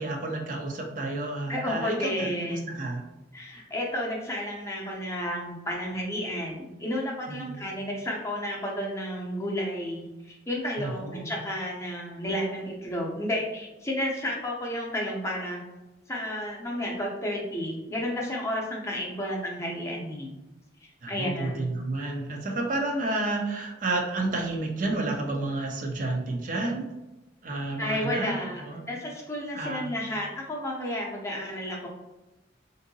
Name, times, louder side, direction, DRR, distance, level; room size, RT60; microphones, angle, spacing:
voice 1, 0.0-3.0 7.3-7.7 10.8-11.3 21.0-26.9 27.4-28.8 29.5-29.9, right 2 dB, 45° right, 1 dB, 0.4 m, -31 dB
voice 2, 1.5-2.7 3.3-15.6 16.1-20.3 21.1-21.7 27.5-31.9, equal, 15° left, -2 dB, 0.6 m, -32 dB
3.6 x 2.6 x 2.6 m, 1.0 s
head